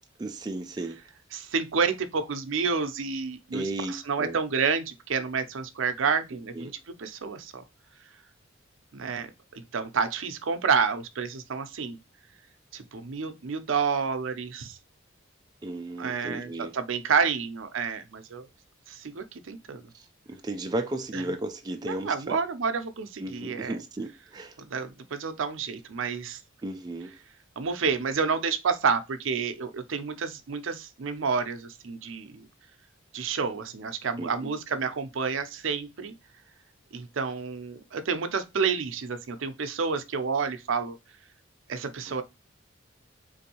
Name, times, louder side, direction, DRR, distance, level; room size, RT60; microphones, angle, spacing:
voice 1, 0.2-1.0 3.5-4.4 6.5-6.7 15.6-16.7 19.9-22.4 23.2-24.5 26.6-27.1 34.2-34.5 42.1-42.2, right 2 dB, 20° right, 0.3 m, -34 dB
voice 2, 1.3-6.7 7.0-7.6 8.9-9.3 9.6-12.0 12.7-14.8 16.0-18.4 18.9-19.8 21.1-21.2 21.8-23.8 24.6-26.4 27.6-32.4 33.1-36.1 36.9-41.0 41.7-42.2, right 5 dB, 75° right, 0.5 m, -29 dB
3.7 x 2.6 x 2.8 m
head